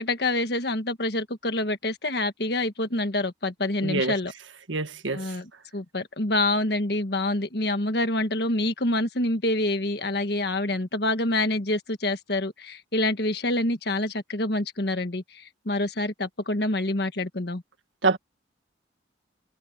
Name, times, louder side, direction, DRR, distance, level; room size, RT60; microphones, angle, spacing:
voice 1, 0.0-4.3 5.1-17.6, left 2 dB, 55° left, 1.6 m, -27 dB
voice 2, 3.8-4.1 4.7-5.2 18.0-18.2, right 3 dB, 85° right, 1.7 m, -25 dB
head